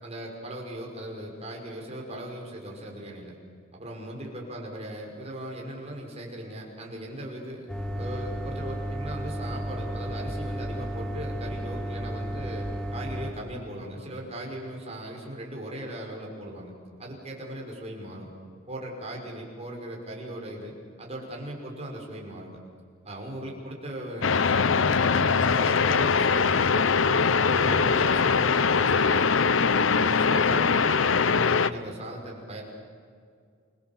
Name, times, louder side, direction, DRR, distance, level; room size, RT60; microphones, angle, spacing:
voice 1, 0.0-3.4 3.7-7.7 7.9-16.7 17.0-18.3 18.7-22.6 23.1-27.2 27.4-29.5 29.9-32.6, right 1 dB, 35° right, 0 dB, 5.7 m, -38 dB
sound 1, 7.7-13.3, equal, 5° left, 3.6 m, -33 dB
sound 2, 24.2-31.7, left 5 dB, 80° left, 0.8 m, -22 dB
29.0 x 22.5 x 7.3 m, 2.2 s
head